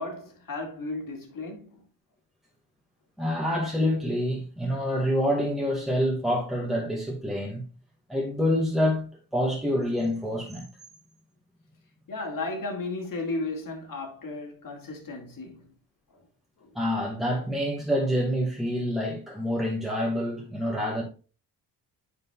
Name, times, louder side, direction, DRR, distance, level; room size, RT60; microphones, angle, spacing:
voice 1, 0.0-1.8 12.1-15.6 16.1-16.2 16.6-16.7, left 2 dB, 50° left, 2.2 m, -34 dB
voice 2, 3.2-7.6 8.1-10.7 16.7-21.0, equal, ahead, 2.0 m, -27 dB
9.3 x 5.4 x 2.4 m
cardioid pair, 105°, 41 cm